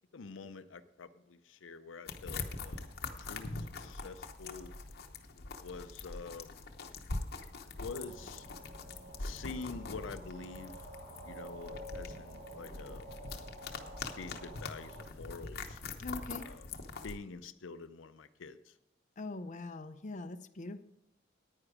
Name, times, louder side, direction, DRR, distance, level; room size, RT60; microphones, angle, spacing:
voice 1, 0.1-2.9 3.2-4.7 5.3-6.7 7.8-8.5 9.2-10.8 11.2-13.1 13.7-13.9 14.2-15.8 16.4-16.7 17.0-18.8, left 4 dB, 80° left, 11 dB, 0.6 m, -47 dB
sound 1, 2.1-17.2, left 3 dB, 55° left, 1.0 m, -43 dB
sound 2, 7.8-15.0, right 1 dB, 60° right, 3.8 m, -50 dB
voice 2, 16.0-16.5 19.2-20.8, left 2 dB, 40° left, 8 dB, 0.6 m, -42 dB
9.8 x 9.7 x 4.9 m, 0.82 s
head